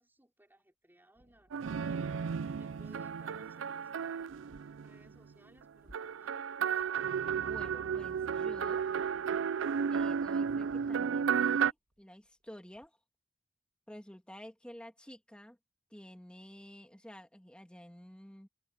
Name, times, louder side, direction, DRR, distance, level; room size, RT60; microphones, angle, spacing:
voice 1, 0.0-2.1 2.5-4.3 4.8-7.2, right 1 dB, 10° right, 5.2 m, -63 dB
sound 1, 1.2-12.9, equal, 45° right, 2.7 m, -67 dB
sound 2, 1.5-5.1 5.9-11.7, right 7 dB, 80° right, 0.4 m, -33 dB
voice 2, 7.4-8.9 9.9-13.0 13.9-15.6 15.9-18.5, equal, 5° left, 2.0 m, -51 dB
open air
head